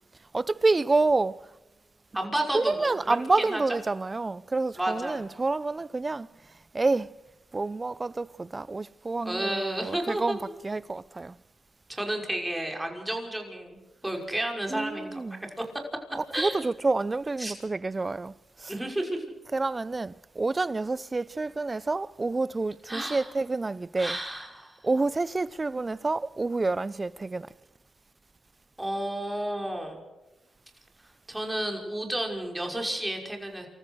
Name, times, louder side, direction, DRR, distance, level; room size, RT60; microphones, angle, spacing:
voice 1, 0.3-1.5 2.5-6.3 6.7-7.1 7.5-10.4 10.6-11.4 14.7-15.5 16.1-18.7 19.5-24.2 24.8-27.5, right 3 dB, 30° right, 0.6 m, -28 dB
voice 2, 2.1-3.6 4.8-5.2 9.3-10.4 11.9-13.8 14.0-15.5 16.3-16.6 17.4-17.5 18.7-19.2 22.9-23.3 24.0-24.8 28.8-30.0 31.3-33.7, right 1 dB, 10° right, 5.8 m, -31 dB
28.0 x 14.5 x 6.5 m
supercardioid pair, 55°, 0 cm